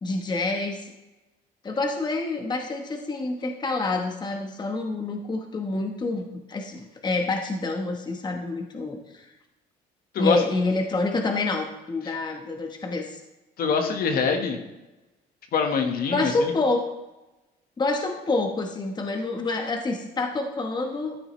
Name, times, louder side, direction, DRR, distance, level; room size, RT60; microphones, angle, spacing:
voice 1, 0.0-0.9 1.6-9.3 10.2-13.2 16.1-16.9 17.8-21.2, left 3 dB, 25° left, 3 dB, 1.1 m, -27 dB
voice 2, 13.6-14.6 15.5-16.5, left 5 dB, 60° left, 4 dB, 1.4 m, -24 dB
13.0 x 7.3 x 3.2 m, 1.0 s
cardioid pair, 110°, 17 cm